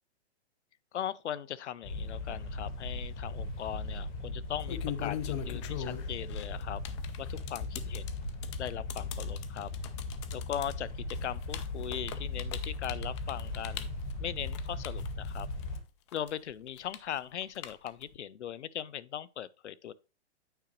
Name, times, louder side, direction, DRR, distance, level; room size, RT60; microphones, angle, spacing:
voice 1, 0.9-6.8 7.2-8.0 8.6-9.7 10.3-13.9 14.2-15.5 16.1-19.9, left 10 dB, 80° left, 0.6 m, -39 dB
sound 1, 1.8-15.8, left 2 dB, 40° left, 1.7 m, -38 dB
sound 2, 3.3-3.7 4.4-15.8 16.1-18.2, left 11 dB, 25° left, 0.4 m, -41 dB
9.0 x 4.8 x 3.0 m
hypercardioid pair, 135°, 34 cm